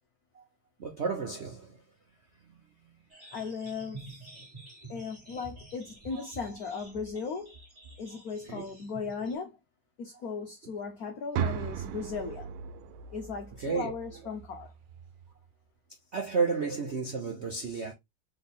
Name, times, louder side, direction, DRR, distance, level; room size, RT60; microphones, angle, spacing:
voice 1, 0.8-1.8 6.1-6.3 8.4-8.8 13.6-14.0 16.1-17.9, right 5 dB, 65° right, 0.6 m, -32 dB
sound 1, 3.1-9.3, right 2 dB, 20° right, 1.6 m, -49 dB
voice 2, 3.3-4.0 4.9-7.5 8.0-9.6 10.0-12.5 13.1-14.7, left 5 dB, 60° left, 1.1 m, -37 dB
sound 2, 11.3-15.3, right 9 dB, 85° right, 1.4 m, -37 dB
4.1 x 3.6 x 3.5 m
omnidirectional pair, 2.2 m